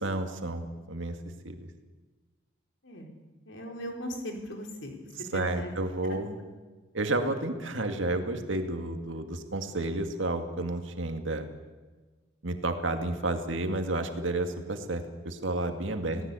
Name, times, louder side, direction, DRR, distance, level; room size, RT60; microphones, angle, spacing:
voice 1, 0.0-1.2 1.4-1.7 5.3-6.3 6.9-11.5 12.4-16.2, right 2 dB, 65° right, 6 dB, 2.3 m, -31 dB
voice 2, 3.5-5.7 6.0-6.2 16.0-16.1, equal, 65° left, 3 dB, 4.1 m, -38 dB
26.0 x 18.0 x 8.5 m, 1.3 s
head